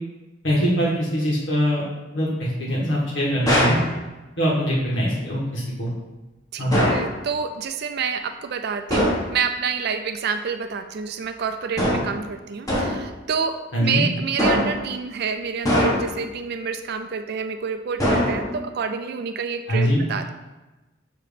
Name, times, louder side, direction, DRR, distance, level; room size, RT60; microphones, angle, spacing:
voice 1, 0.4-1.8 2.1-3.8 4.4-5.9 6.6-6.9 13.7-14.0 19.7-20.0, equal, 75° left, -5 dB, 1.7 m, -22 dB
Hitting Metel Object, 3.5-3.9 6.7-7.1 8.9-9.3 11.8-12.2 12.7-13.1 14.4-14.9 15.7-16.2 18.0-18.7, equal, 20° left, 1.3 m, -21 dB
voice 2, 6.5-20.3, right 6 dB, 55° right, 7 dB, 0.4 m, -28 dB
7.5 x 3.0 x 5.2 m, 1.1 s
head